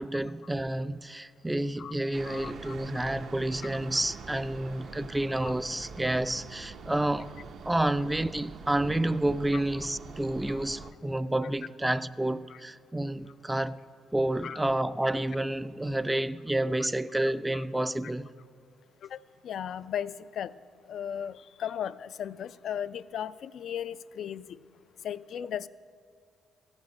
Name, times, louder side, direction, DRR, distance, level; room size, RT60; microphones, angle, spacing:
voice 1, 0.0-7.3 7.6-13.8 14.1-18.3, right 1 dB, 10° right, 0.3 m, -29 dB
sound 1, 2.1-10.9, right 5 dB, 60° right, 0.6 m, -45 dB
voice 2, 2.2-3.1 5.4-5.5 10.5-10.9 12.5-12.6 14.4-14.6 17.5-17.6 19.0-20.5 20.9-24.6 25.0-25.7, left 9 dB, 65° left, 0.3 m, -37 dB
14.5 x 7.2 x 6.5 m
cardioid pair, 90°, 0 cm